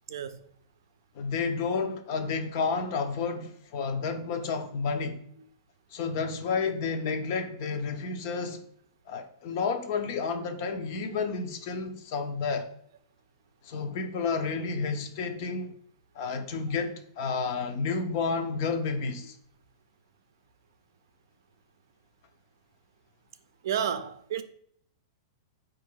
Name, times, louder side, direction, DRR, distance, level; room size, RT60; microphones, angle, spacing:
voice 1, 1.1-5.2 5.9-8.6 9.1-12.7 13.6-15.7 16.1-19.4, left 4 dB, 50° left, 0.6 m, -31 dB
voice 2, 23.6-24.4, right 8 dB, 70° right, 0.4 m, -31 dB
3.8 x 2.5 x 4.6 m
hypercardioid pair, 150°, 2 cm